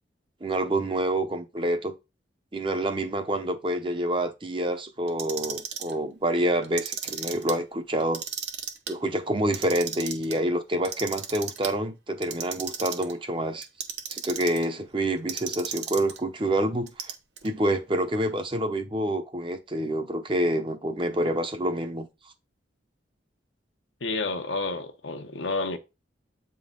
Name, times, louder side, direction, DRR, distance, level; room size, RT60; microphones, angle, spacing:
voice 1, 0.4-1.9 2.5-8.2 8.9-13.7 14.1-17.1 17.4-22.1, right 1 dB, 30° right, 0.8 m, -27 dB
Clock, 5.1-5.9 6.6-7.5 8.0-8.9 9.4-10.3 10.8-11.7 12.2-13.1 13.6-14.7 15.3-16.2 16.9-17.5, right 8 dB, 65° right, 1.0 m, -34 dB
voice 2, 24.0-25.8, left 3 dB, 85° left, 1.0 m, -30 dB
8.2 x 3.8 x 3.8 m
head